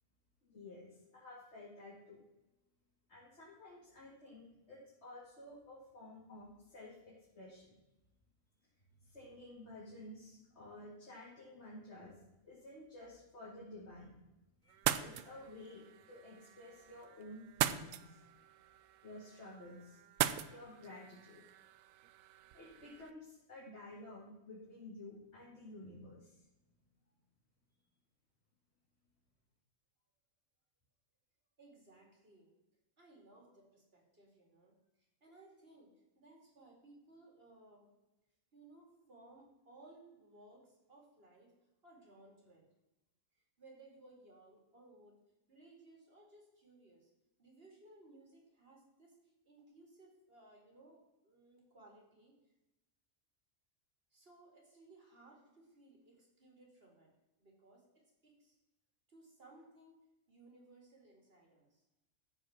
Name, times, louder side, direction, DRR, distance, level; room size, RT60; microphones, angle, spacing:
voice 1, 0.5-2.2 3.1-7.8 9.0-14.1 14.6-18.2 19.0-20.0 20.5-21.4 22.5-26.4, left 1 dB, 55° left, -6 dB, 2.6 m, -53 dB
sound 1, 14.7-23.1, right 11 dB, 80° right, 1.0 m, -41 dB
voice 2, 31.6-32.5 33.0-37.9 38.5-41.5 41.8-42.7 43.3-45.2 45.5-47.1 47.4-52.5 54.1-57.1 57.4-58.6 59.1-60.0 60.3-61.8, right 2 dB, 45° right, 0 dB, 2.8 m, -61 dB
13.5 x 4.9 x 5.9 m, 0.98 s
omnidirectional pair, 1.4 m